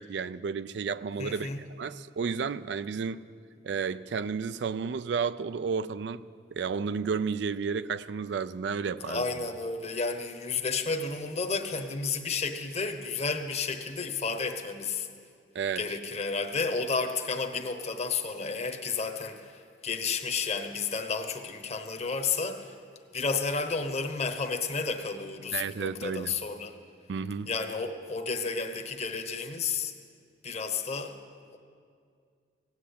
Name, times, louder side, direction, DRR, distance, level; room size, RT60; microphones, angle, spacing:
voice 1, 0.0-1.5 1.8-3.2 3.6-6.2 6.5-9.3 15.5-15.8 25.5-26.3 27.1-27.5, right 5 dB, 70° right, 14 dB, 0.4 m, -32 dB
voice 2, 1.2-1.6 9.0-15.1 15.8-22.7 23.1-26.8 27.5-29.9 30.4-31.1 31.5-31.6, left 4 dB, 35° left, 7 dB, 1.0 m, -32 dB
16.5 x 9.7 x 8.5 m, 2.3 s
head